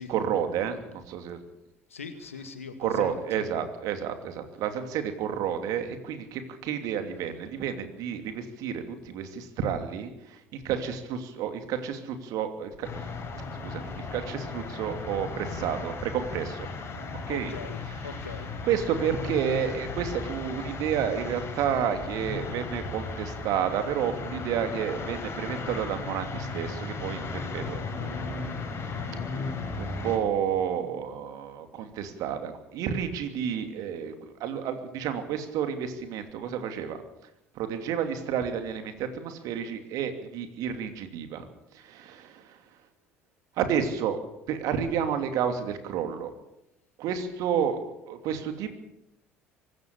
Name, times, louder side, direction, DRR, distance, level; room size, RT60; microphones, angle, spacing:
voice 1, 0.0-1.4 2.8-13.1 13.6-16.7 17.3-17.5 18.6-28.4 29.4-37.0 37.5-41.5 41.7-42.6 43.6-44.2 44.5-46.3 47.0-48.7, right 8 dB, 55° right, 8 dB, 2.8 m, -31 dB
voice 2, 1.9-3.4 17.3-18.5, left 5 dB, 80° left, 8 dB, 2.1 m, -41 dB
sound 1, 12.8-30.2, left 3 dB, 35° left, 5.7 m, -36 dB
24.0 x 13.0 x 8.4 m, 0.86 s
figure-of-eight pair, 60°, 7 cm